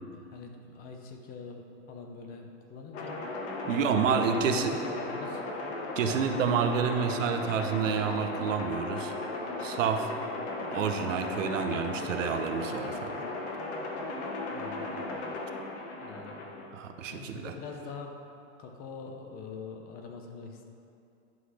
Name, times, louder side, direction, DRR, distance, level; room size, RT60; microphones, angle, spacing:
voice 1, 0.3-3.1 3.7-5.4 14.5-15.0 16.0-16.5 17.0-18.1 18.6-20.6, left 4 dB, 25° left, 3 dB, 0.6 m, -44 dB
sound 1, 2.9-16.7, left 2 dB, 60° left, 1.3 m, -36 dB
voice 2, 3.7-4.8 6.0-9.2 9.6-10.3 10.6-13.2 16.7-17.6, right 6 dB, 90° right, 7 dB, 0.8 m, -29 dB
10.5 x 4.0 x 4.8 m, 2.5 s
supercardioid pair, 145°, 37 cm